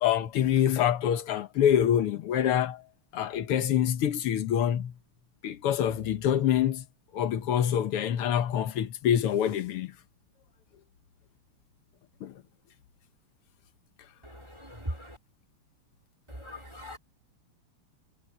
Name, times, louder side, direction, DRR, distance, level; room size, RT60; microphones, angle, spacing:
voice 1, 0.0-2.8 3.1-4.9 5.4-6.8 7.1-9.9 12.2-12.3, left 10 dB, 85° left, 2.0 m, -26 dB
voice 2, 14.2-15.2 16.3-17.0, equal, 15° right, 2.4 m, -40 dB
omnidirectional pair, 2.4 m